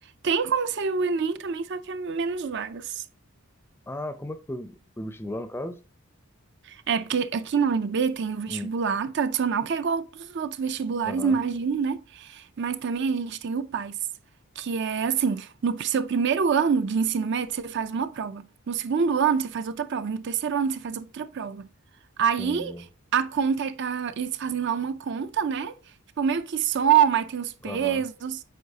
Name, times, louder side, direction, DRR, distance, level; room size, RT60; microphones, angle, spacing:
voice 1, 0.2-3.0 6.6-14.0 14.6-21.7 22.2-22.7 23.1-25.7 26.2-28.4, right 6 dB, 50° right, 0.4 m, -26 dB
voice 2, 3.9-5.8 8.5-8.7 11.0-11.4 22.4-22.8 27.6-28.0, left 1 dB, 10° left, 0.4 m, -35 dB
8.0 x 4.7 x 2.8 m
head